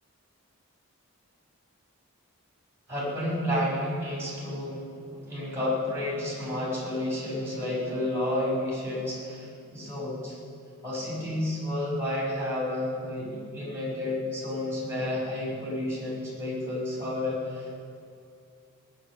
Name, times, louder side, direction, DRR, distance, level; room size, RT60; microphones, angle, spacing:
voice 1, 2.9-4.8 5.3-10.4 10.8-17.8, left 1 dB, 10° right, -5 dB, 5.4 m, -31 dB
18.0 x 10.5 x 7.6 m, 2.5 s
head